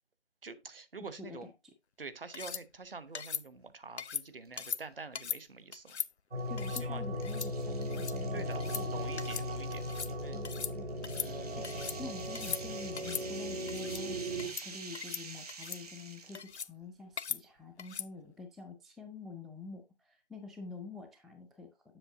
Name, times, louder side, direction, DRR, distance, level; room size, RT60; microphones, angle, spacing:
voice 1, 0.4-1.5 2.0-6.0 6.7-7.0 8.3-8.6 8.9-10.4 11.1-11.7, right 4 dB, 55° right, 0.9 m, -46 dB
voice 2, 1.2-1.5 6.5-9.1 10.3-10.9 11.6-22.0, left 4 dB, ahead, 0.4 m, -47 dB
sound 1, 2.3-2.6 3.1-3.4 4.0-4.2 4.6-4.8 5.1-5.4 5.7-6.1 6.6-6.8 7.2-7.5 7.8-8.1 8.5-8.8 9.2-9.5 9.7-10.1 10.4-10.7 11.0-12.0 12.3-12.6 13.0-13.2 13.7-14.0 14.4-14.7 14.9-15.2 15.5-15.8 16.3-16.7 17.2-17.4 17.8-18.1, left 7 dB, 70° left, 0.5 m, -39 dB
sound 2, 4.4-4.9 5.3-5.4 6.4-16.5, right 4 dB, 35° right, 1.1 m, -49 dB
sound 3, 6.3-14.5, equal, 75° right, 2.6 m, -37 dB
7.7 x 6.5 x 2.6 m
figure-of-eight pair, 160°, 35 cm